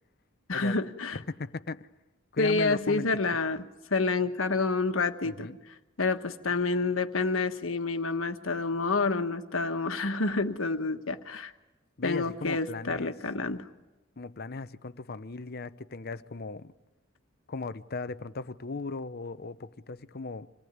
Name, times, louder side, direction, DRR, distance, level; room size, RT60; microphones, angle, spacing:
voice 1, 0.5-1.2 2.4-5.5 6.0-11.5 12.0-13.6, left 3 dB, 90° left, 1.4 m, -28 dB
voice 2, 1.1-1.9 2.3-3.1 5.2-5.6 12.0-13.1 14.2-16.7 17.5-20.5, left 3 dB, 50° left, 0.8 m, -37 dB
26.5 x 18.5 x 9.5 m
head